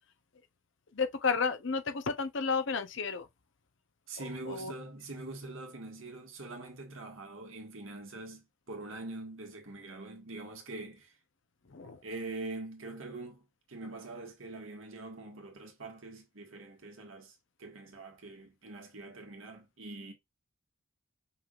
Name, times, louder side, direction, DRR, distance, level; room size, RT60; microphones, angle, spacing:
voice 1, 0.9-3.3 4.2-4.7 11.7-12.0, left 5 dB, 55° left, 0.7 m, -32 dB
voice 2, 4.1-11.2 12.0-20.1, right 2 dB, 65° right, 1.6 m, -44 dB
5.5 x 3.4 x 2.4 m
head